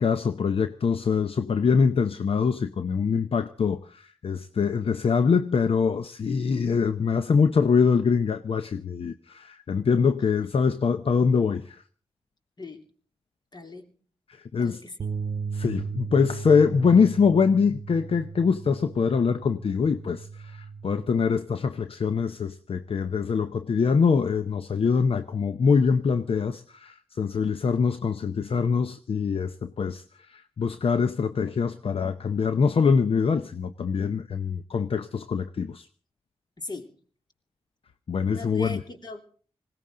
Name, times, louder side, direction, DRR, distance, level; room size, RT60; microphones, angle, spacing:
voice 1, 0.0-11.8 14.3-14.8 15.5-35.9 38.1-38.8, left 5 dB, 65° left, 0.8 m, -24 dB
voice 2, 13.5-13.9 14.6-15.1 36.6-36.9 38.3-39.2, left 2 dB, 45° left, 3.0 m, -39 dB
sound 1, 15.0-21.2, right 5 dB, 65° right, 0.8 m, -36 dB
20.5 x 17.5 x 3.8 m
cardioid pair, 65°, 10 cm